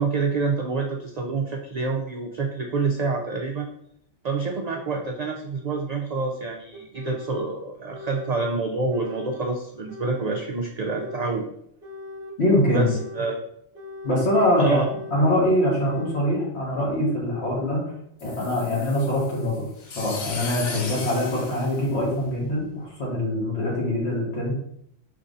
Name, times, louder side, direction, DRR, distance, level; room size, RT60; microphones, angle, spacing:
voice 1, 0.0-3.7 4.2-11.5 12.7-13.4 14.6-14.9, right 3 dB, 80° right, 2 dB, 0.3 m, -27 dB
sound 1, 4.7-4.8 5.7-5.8 6.7-7.5 7.9-8.5 8.9-9.5 9.9-10.4 10.8-11.4 11.8-12.4 12.8-13.3 13.7-14.3 14.7-15.3 15.7-16.3, left 2 dB, 60° right, 0.8 m, -39 dB
voice 2, 12.4-12.9 14.0-14.8 15.1-17.9 18.2-19.7 19.9-24.5, left 1 dB, 60° left, -3 dB, 1.6 m, -23 dB
sound 2, 18.2-22.5, left 4 dB, 80° left, 1.0 m, -37 dB
5.4 x 3.4 x 2.6 m, 0.73 s
omnidirectional pair, 1.2 m